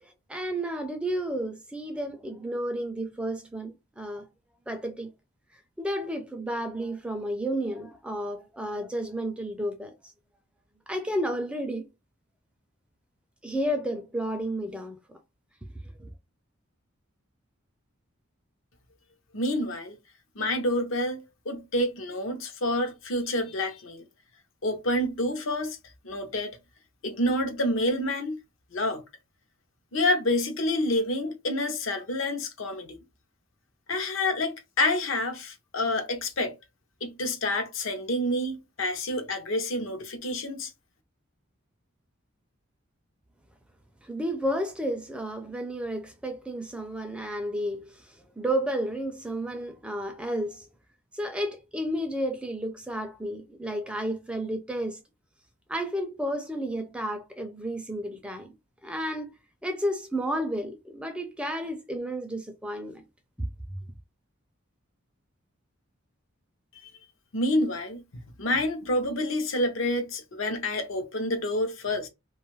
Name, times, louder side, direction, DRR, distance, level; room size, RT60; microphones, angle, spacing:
voice 1, 0.0-4.3 4.7-5.1 5.8-9.9 10.9-11.9 13.4-15.2 16.0-16.1 44.0-50.7 51.1-55.0 55.7-58.5 58.8-63.0 63.4-63.8, equal, 5° right, 0.3 m, -32 dB
voice 2, 19.3-20.0 20.4-24.1 24.6-25.8 26.0-26.6 27.0-28.4 28.7-29.0 29.9-33.0 33.9-36.5 37.0-40.7 67.3-68.0 68.4-72.1, left 1 dB, 70° left, 0.7 m, -28 dB
2.5 x 2.3 x 3.1 m
head